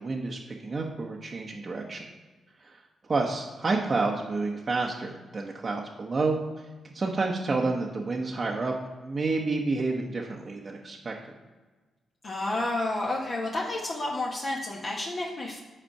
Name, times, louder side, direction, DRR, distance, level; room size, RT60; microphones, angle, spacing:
voice 1, 0.0-2.0 2.6-2.8 3.1-8.7 9.0-11.1, right 3 dB, 45° right, -1 dB, 0.8 m, -29 dB
voice 2, 12.2-15.6, left 2 dB, 50° left, -4 dB, 1.2 m, -30 dB
5.2 x 4.3 x 5.6 m, 1.3 s
supercardioid pair, 50°, 0 cm